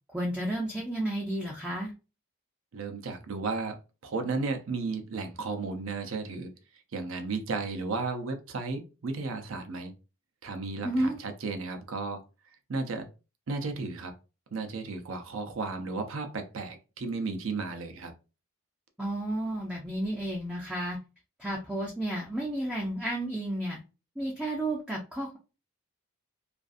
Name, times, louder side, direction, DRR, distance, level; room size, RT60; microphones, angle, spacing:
voice 1, 0.1-1.9 10.8-11.2 19.0-21.0 21.4-23.8 24.2-25.4, right 1 dB, 5° right, 0.4 m, -32 dB
voice 2, 2.7-3.8 4.0-6.5 6.9-9.9 10.4-12.2 12.7-13.1 13.5-14.1 14.5-18.1, right 3 dB, 65° right, 0.5 m, -34 dB
2.5 x 2.4 x 2.4 m
head